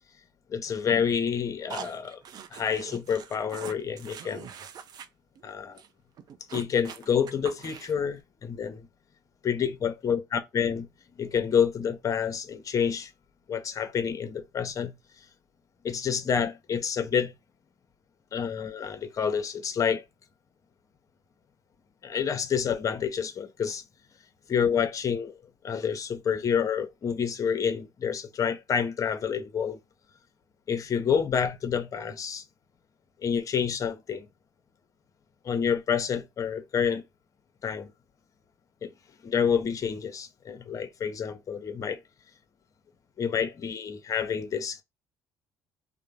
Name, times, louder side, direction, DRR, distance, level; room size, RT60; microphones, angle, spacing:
voice 1, 0.5-2.2 2.5-4.5 5.4-5.8 6.5-8.9 9.4-10.9 11.2-13.1 13.5-14.9 15.8-17.3 18.3-20.0 22.0-23.8 24.5-25.3 25.6-29.8 30.7-32.4 33.2-34.3 35.4-37.0 37.6-37.9 38.8-38.9 39.2-42.0 43.2-44.8, left 7 dB, 40° left, 0.6 m, -28 dB
sound 1, 1.7-5.1 5.4-5.5 5.8-5.9 6.2-8.1, right 8 dB, 50° right, 0.4 m, -43 dB
2.5 x 2.0 x 3.0 m
supercardioid pair, 70°, 9 cm